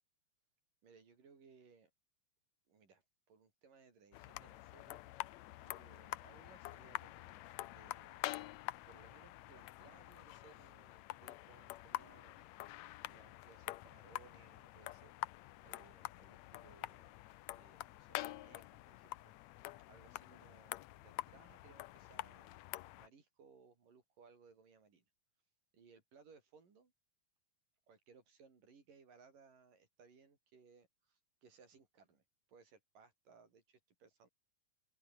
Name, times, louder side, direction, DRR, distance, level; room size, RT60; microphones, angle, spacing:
voice 1, 0.8-1.9 2.7-3.0 3.3-5.0 5.6-8.2 8.9-12.5 13.0-15.2 15.6-17.2 17.5-19.3 19.9-22.5 23.0-25.0 25.7-26.9 27.9-32.2 32.5-34.3, right 5 dB, 75° right, 6.3 m, -64 dB
sound 1, 4.1-23.1, left 17 dB, 80° left, 1.6 m, -47 dB
open air
omnidirectional pair, 3.9 m